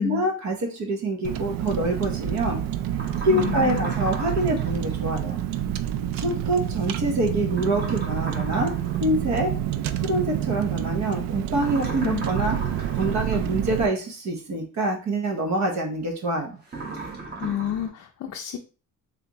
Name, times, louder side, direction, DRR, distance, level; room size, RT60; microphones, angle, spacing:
voice 1, 0.0-2.6 3.2-5.4 6.1-8.7 9.0-9.5 10.0-12.6 12.9-16.6, right 1 dB, 55° right, 1 dB, 1.1 m, -26 dB
Car, 1.2-13.9, right 11 dB, 80° right, 0.5 m, -28 dB
sound 1, 2.9-4.8 7.5-9.2 11.5-13.5 16.7-17.9, right 3 dB, 30° right, 1.3 m, -36 dB
voice 2, 3.3-4.0 6.3-6.4 12.0-12.3 17.4-18.6, left 11 dB, 50° left, 3 dB, 0.5 m, -30 dB
3.7 x 3.3 x 2.9 m, 0.35 s
cardioid pair, 120°, 34 cm